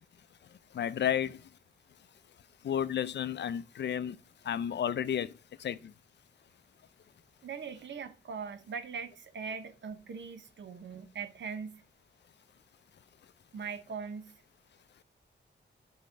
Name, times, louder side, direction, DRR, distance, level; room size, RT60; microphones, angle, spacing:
voice 1, 0.7-1.5 2.6-4.2 4.4-5.3 5.6-5.9, left 9 dB, 70° left, 0.5 m, -32 dB
voice 2, 7.4-11.8 13.5-14.3, right 5 dB, 85° right, 1.1 m, -41 dB
10.5 x 4.4 x 5.1 m
wide cardioid pair, 180°, 19 cm